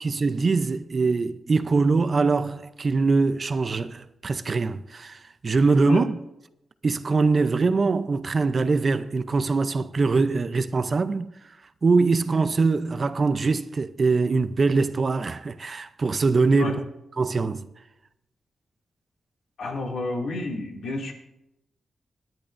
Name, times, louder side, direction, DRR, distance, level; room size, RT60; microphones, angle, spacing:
voice 1, 0.0-6.2 6.8-11.3 11.8-16.7 17.2-17.7, right 4 dB, 35° right, 0.5 m, -23 dB
voice 2, 19.6-21.1, left 2 dB, 80° left, 2.3 m, -28 dB
26.5 x 10.5 x 2.6 m
wide cardioid pair, 165°, 0 cm